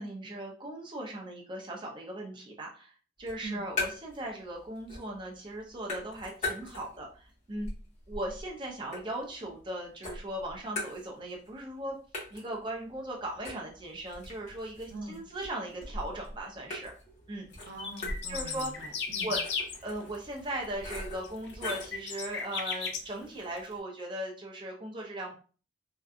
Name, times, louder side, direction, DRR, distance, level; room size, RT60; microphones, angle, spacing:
voice 1, 0.0-2.9 3.2-7.7 8.1-12.0 12.3-16.9 17.3-17.5 18.3-18.7 19.2-19.4 19.8-25.4, right 1 dB, 25° right, -1 dB, 0.5 m, -38 dB
sound 1, 3.2-4.3 4.6-5.2 5.5-7.1 7.5-9.7 10.0-11.5 11.7-11.8 12.1-22.0, left 2 dB, 40° left, 1.0 m, -40 dB
voice 2, 14.9-15.2 17.7-19.4, right 2 dB, 75° right, 1 dB, 0.7 m, -42 dB
sound 2, 17.6-19.8 20.1-20.2 21.2-23.0 23.4-23.5, left 5 dB, 65° left, 0.5 m, -35 dB
2.6 x 2.3 x 2.3 m, 0.38 s
head